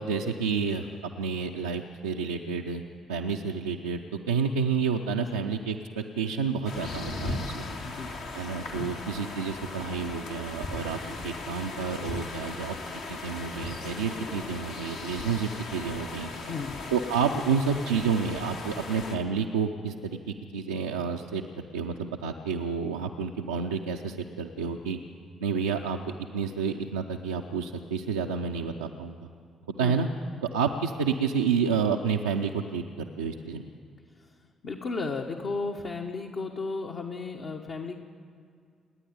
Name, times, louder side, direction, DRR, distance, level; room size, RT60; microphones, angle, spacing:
voice 1, 0.0-2.8 3.1-4.0 4.3-7.5 8.3-12.8 13.1-16.3 16.9-21.4 21.7-25.0 25.4-26.0 26.3-29.2 29.8-30.1 30.5-33.7, right 6 dB, 75° right, 1 dB, 0.6 m, -29 dB
sound 1, 6.6-19.2, left 2 dB, 70° left, 2.7 m, -37 dB
voice 2, 7.8-8.1 16.5-16.8 29.8-29.9 34.1-34.3 34.6-38.0, left 4 dB, 50° left, 1 dB, 1.3 m, -34 dB
29.0 x 9.9 x 9.7 m, 2.2 s
figure-of-eight pair, 40°, 0 cm